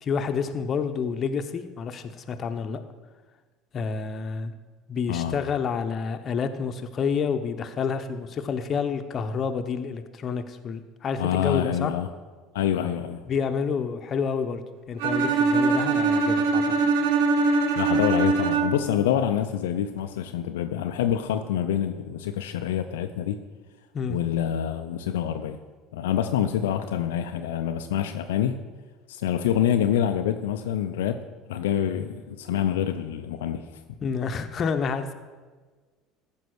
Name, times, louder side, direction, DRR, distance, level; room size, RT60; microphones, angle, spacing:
voice 1, 0.0-2.8 3.7-4.5 4.9-11.9 13.3-14.6 14.9-16.7 23.9-24.2 34.0-35.1, left 6 dB, 40° left, 8 dB, 1.0 m, -29 dB
voice 2, 5.1-5.4 11.2-12.1 12.5-13.2 17.8-23.4 24.1-25.6 25.9-28.6 29.1-33.8, left 10 dB, 75° left, 6 dB, 0.5 m, -26 dB
Bowed string instrument, 15.0-19.0, right 4 dB, 70° right, 0.9 m, -22 dB
14.0 x 5.4 x 6.2 m, 1.4 s
hypercardioid pair, 70°, 0 cm